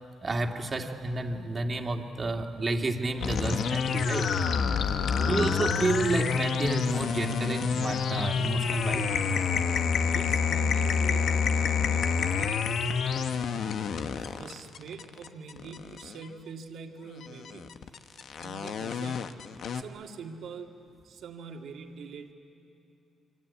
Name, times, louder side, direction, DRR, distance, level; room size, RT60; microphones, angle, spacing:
voice 1, 0.2-4.3 4.9-9.1, right 2 dB, 30° right, 3 dB, 2.4 m, -30 dB
sound 1, 3.2-16.3 17.2-19.8, left 6 dB, 65° left, 1.2 m, -28 dB
voice 2, 5.0-5.6 10.1-13.9 14.4-17.7 18.4-20.8 21.0-22.3, right 5 dB, 70° right, 3 dB, 2.3 m, -45 dB
26.5 x 24.5 x 8.6 m, 2.7 s
cardioid pair, 90°, 0 cm